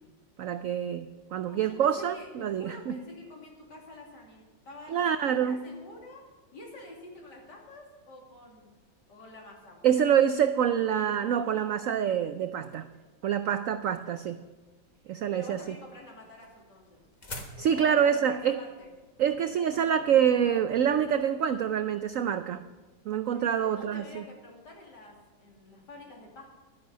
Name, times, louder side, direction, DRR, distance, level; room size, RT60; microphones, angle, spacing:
voice 1, 0.4-3.0 4.9-5.6 9.8-12.9 13.2-14.4 15.1-15.6 17.6-18.6 19.2-22.6 23.1-24.2, right 8 dB, 85° right, 10 dB, 0.7 m, -26 dB
voice 2, 1.4-6.3 6.5-8.7 9.1-9.8 15.3-17.0 17.7-18.9 23.3-26.5, left 1 dB, 65° left, -1 dB, 3.3 m, -48 dB
sound 1, 15.5-20.7, left 1 dB, 25° left, 1.2 m, -47 dB
12.0 x 10.5 x 6.1 m, 1.3 s
omnidirectional pair, 2.0 m